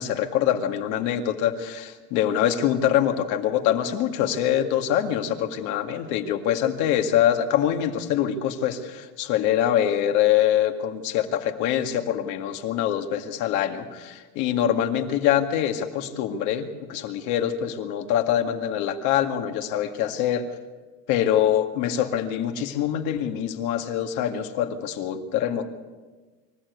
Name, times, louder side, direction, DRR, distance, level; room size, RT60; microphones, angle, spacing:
voice 1, 0.0-20.5 21.1-25.7, left 10 dB, 60° left, 5 dB, 2.0 m, -24 dB
26.0 x 14.5 x 8.2 m, 1.3 s
cardioid pair, 165°, 34 cm